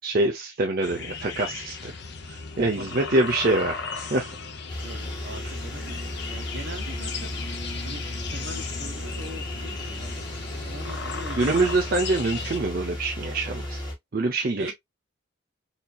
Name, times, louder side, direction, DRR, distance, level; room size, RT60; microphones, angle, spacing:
voice 1, 0.0-1.9 2.3-4.3 11.4-13.8 14.1-14.7, right 2 dB, 50° right, 0.6 m, -25 dB
sound 1, 0.8-12.6, left 4 dB, 55° left, 0.7 m, -36 dB
voice 2, 2.7-3.2 4.8-7.3 7.8-10.2 10.5-11.7 14.6-14.7, right 1 dB, 70° right, 1.3 m, -41 dB
sound 2, 4.7-13.9, left 1 dB, 25° left, 1.4 m, -35 dB
4.2 x 2.8 x 2.3 m
head